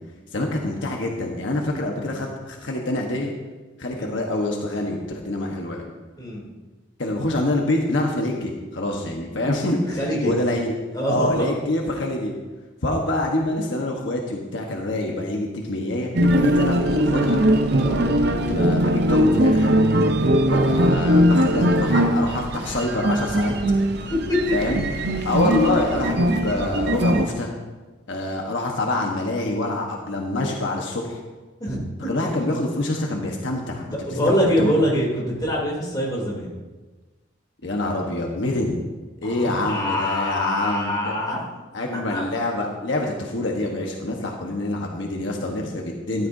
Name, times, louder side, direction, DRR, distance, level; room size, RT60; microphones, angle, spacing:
voice 1, 0.3-3.3 3.8-5.8 7.0-10.7 11.1-12.3 12.8-17.4 18.5-19.7 20.5-23.5 24.5-24.8 25.2-27.5 28.1-31.2 32.0-34.2 34.6-34.7 37.6-38.8 39.2-41.1 41.7-46.3, left 1 dB, 70° left, 0 dB, 1.2 m, -26 dB
voice 2, 9.9-10.3 10.9-11.5 17.8-18.0 31.6-31.8 32.2-32.3 34.1-36.5 39.2-41.5 41.9-42.2, equal, 20° left, -3 dB, 3.0 m, -24 dB
sound 1, 16.1-27.3, equal, 55° right, 0.7 m, -20 dB
13.5 x 11.5 x 2.7 m, 1.2 s
head